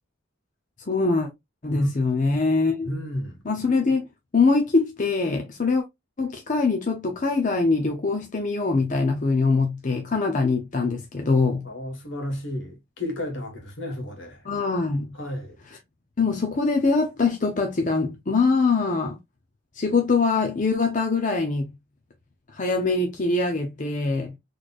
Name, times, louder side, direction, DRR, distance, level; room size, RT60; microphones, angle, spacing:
voice 1, 0.8-1.3 1.6-2.9 3.4-4.1 4.3-5.8 6.2-11.7 14.4-15.2 16.2-19.2 19.7-21.8 22.5-24.4, left 3 dB, 40° left, 0.7 m, -23 dB
voice 2, 2.8-3.4 11.6-14.4 15.2-15.5, left 1 dB, 75° left, 1.5 m, -32 dB
4.1 x 3.2 x 2.4 m
head